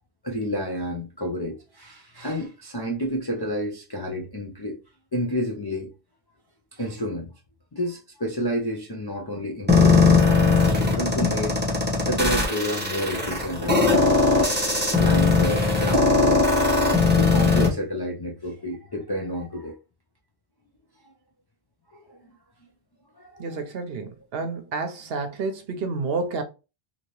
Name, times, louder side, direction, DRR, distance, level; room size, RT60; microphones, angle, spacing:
voice 1, 0.2-4.8 5.1-5.9 6.7-7.3 7.7-11.6 12.1-16.5 17.0-19.7 21.0-21.1 21.9-22.2 23.2-23.7, equal, 35° left, 0.3 m, -30 dB
sound 1, 9.7-17.7, left 3 dB, 10° right, 0.8 m, -19 dB
voice 2, 23.4-26.4, right 4 dB, 65° right, 0.9 m, -30 dB
2.8 x 2.8 x 3.0 m
omnidirectional pair, 1.1 m